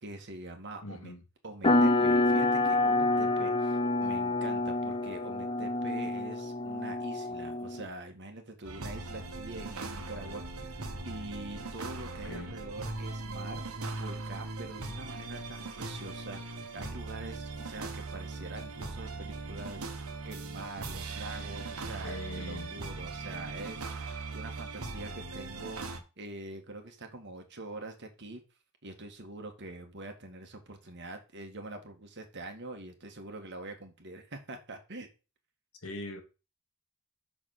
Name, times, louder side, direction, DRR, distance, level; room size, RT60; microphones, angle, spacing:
voice 1, 0.0-1.1 1.4-10.6 11.0-28.4 28.8-35.1, right 2 dB, 55° right, 1.8 m, -44 dB
voice 2, 0.8-1.2 12.2-12.6 22.0-22.8 35.8-36.2, left 2 dB, 75° left, 1.6 m, -41 dB
sound 1, 1.6-7.8, left 2 dB, 25° left, 0.9 m, -27 dB
sound 2, 8.6-26.0, right 3 dB, 80° right, 1.3 m, -40 dB
sound 3, 9.1-15.7, right 1 dB, 15° right, 1.3 m, -50 dB
6.1 x 5.2 x 6.6 m
head